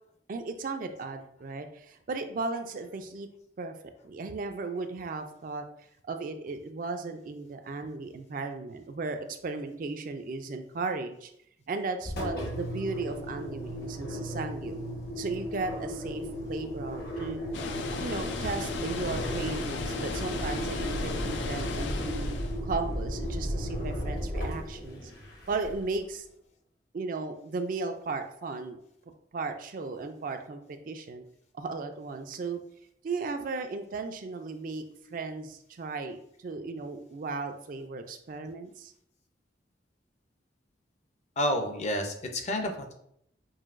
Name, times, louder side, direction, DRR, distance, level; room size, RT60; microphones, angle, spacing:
voice 1, 0.3-3.3 3.6-3.7 4.0-5.7 6.1-11.3 11.7-14.8 15.1-17.4 18.0-22.3 22.6-25.1 25.5-26.3 26.9-28.8 29.3-31.2 31.5-32.6 33.0-34.8 35.1-38.9, right 3 dB, 50° right, 6 dB, 0.4 m, -35 dB
Engine, 12.0-26.0, equal, 60° left, 1.0 m, -35 dB
Water, 17.5-22.6, left 4 dB, 90° left, 0.5 m, -36 dB
voice 2, 41.4-42.9, left 1 dB, 40° left, 4 dB, 0.6 m, -30 dB
5.5 x 2.7 x 2.5 m, 0.71 s
head